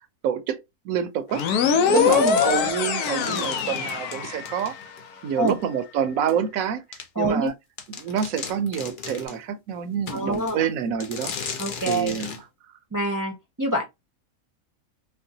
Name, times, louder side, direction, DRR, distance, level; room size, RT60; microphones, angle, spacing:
voice 1, 0.2-1.5 1.9-4.7 5.2-6.8 7.2-7.5 8.0-11.3 11.9-12.4, right 8 dB, 70° right, 1.0 m, -27 dB
sound 1, 1.3-4.8, left 7 dB, 80° left, 1.2 m, -23 dB
sound 2, 1.4-5.0 5.5-5.6 6.3-6.4 6.9-7.1 7.5-7.6 7.8-9.4 10.1-10.6 11.0-12.4, left 6 dB, 60° left, 0.5 m, -37 dB
voice 2, 1.9-2.4 5.4-5.6 7.1-7.5 10.1-10.7 11.6-12.1 12.9-13.8, right 1 dB, 20° right, 0.6 m, -26 dB
4.4 x 2.2 x 2.7 m
omnidirectional pair, 1.6 m